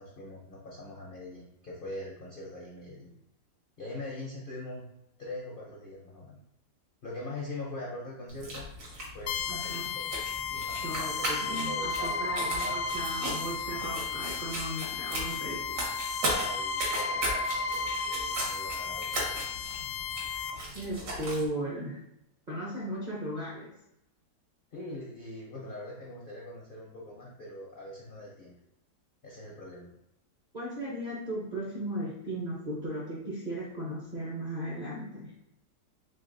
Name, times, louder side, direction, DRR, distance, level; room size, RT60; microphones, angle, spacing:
voice 1, 0.0-3.1 3.8-4.8 5.2-6.4 7.0-8.7 9.1-10.0 10.5-12.8 16.3-19.3 24.7-28.5 29.2-29.9, left 2 dB, 60° left, -4 dB, 0.5 m, -42 dB
sound 1, 8.3-21.5, right 1 dB, 70° right, 1.7 m, -37 dB
sound 2, 9.3-20.5, left 4 dB, 85° left, 1.3 m, -34 dB
voice 2, 9.5-9.9 10.7-15.8 20.3-20.4 20.7-22.0 22.5-23.7 30.5-35.3, right 1 dB, 45° right, -6 dB, 0.6 m, -36 dB
3.9 x 3.4 x 2.6 m, 0.84 s
omnidirectional pair, 1.9 m